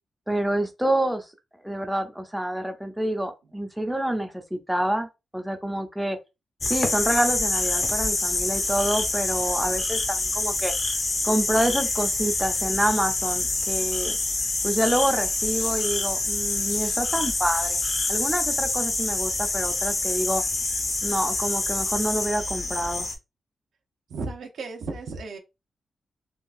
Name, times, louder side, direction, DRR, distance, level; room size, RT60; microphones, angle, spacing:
voice 1, 0.3-1.3 1.6-5.1 5.3-6.2 6.7-10.7 11.2-14.1 14.6-17.8 18.1-20.4 21.0-23.1, right 1 dB, 5° right, 0.5 m, -27 dB
sound 1, 6.6-23.2, left 2 dB, 40° left, 0.8 m, -26 dB
voice 2, 24.1-25.4, right 3 dB, 80° right, 0.7 m, -34 dB
3.7 x 2.3 x 2.5 m
wide cardioid pair, 130°, 0 cm